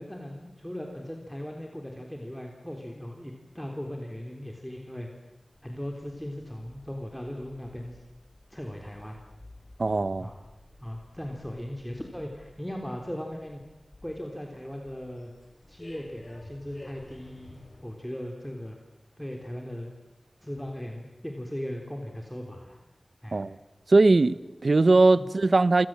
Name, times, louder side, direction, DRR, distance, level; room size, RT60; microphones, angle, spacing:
voice 1, 0.0-5.1 5.6-8.0 8.5-9.2 10.2-10.4 10.8-13.6 14.0-15.3 15.7-18.8 19.2-19.9 20.4-22.8 23.2-23.4 25.2-25.3, equal, 5° left, 3.5 m, -38 dB
sound 1, 5.5-18.0, left 1 dB, 40° left, 7.1 m, -53 dB
voice 2, 9.8-10.3 23.3-23.6 23.9-25.9, right 3 dB, 65° right, 1.0 m, -20 dB
28.5 x 25.5 x 7.7 m
wide cardioid pair, 55°, 0 cm